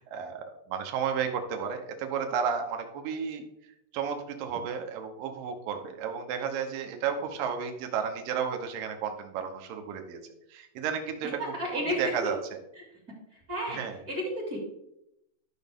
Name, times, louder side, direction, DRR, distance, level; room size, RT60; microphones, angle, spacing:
voice 1, 0.0-3.4 3.9-10.2 10.5-12.4 13.7-14.0, right 7 dB, 75° right, 5 dB, 2.1 m, -32 dB
voice 2, 11.4-12.3 12.8-12.9 13.5-13.8 14.1-14.6, equal, 30° right, -2 dB, 1.8 m, -32 dB
12.5 x 6.2 x 3.6 m, 0.84 s
omnidirectional pair, 5.1 m